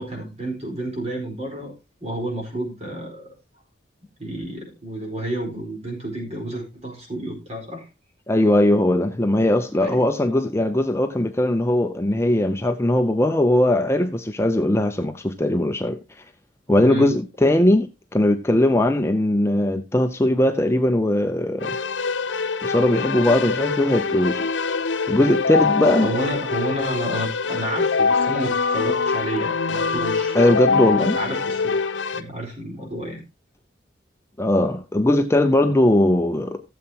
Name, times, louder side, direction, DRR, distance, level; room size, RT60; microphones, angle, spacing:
voice 1, 0.0-1.7 2.0-3.3 4.2-7.8 9.7-10.1 16.8-17.1 26.0-30.6 31.2-31.7 32.1-33.2, right 1 dB, 35° right, 4.6 m, -30 dB
voice 2, 8.3-16.0 16.7-21.8 22.6-24.5 25.1-26.1 30.3-31.2 34.4-36.6, left 1 dB, 15° left, 0.5 m, -19 dB
Keyboard (musical), 21.6-32.2, left 4 dB, 80° left, 0.8 m, -24 dB
16.0 x 7.5 x 2.9 m
head